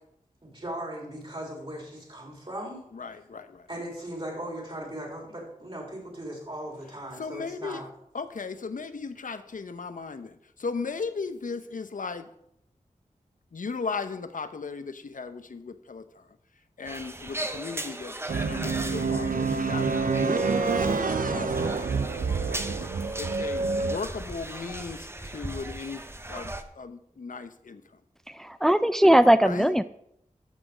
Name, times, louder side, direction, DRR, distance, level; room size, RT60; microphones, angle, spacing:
voice 1, 0.4-2.9 3.7-7.9, right 1 dB, 40° right, -1 dB, 3.7 m, -38 dB
voice 2, 2.9-3.7 7.2-7.8 8.1-12.3 13.5-16.3 16.8-18.2 18.4-19.9 20.3-21.7 22.7-22.8 23.2-27.8 29.4-29.8, left 4 dB, 70° left, 10 dB, 0.8 m, -37 dB
sound 1, 16.8-26.6, right 1 dB, 15° right, 0.9 m, -38 dB
sound 2, 18.3-24.0, right 4 dB, 75° right, 0.7 m, -27 dB
voice 3, 28.4-29.8, right 1 dB, 5° left, 13 dB, 0.5 m, -19 dB
13.5 x 6.2 x 5.0 m, 0.73 s
wide cardioid pair, 60°, 14 cm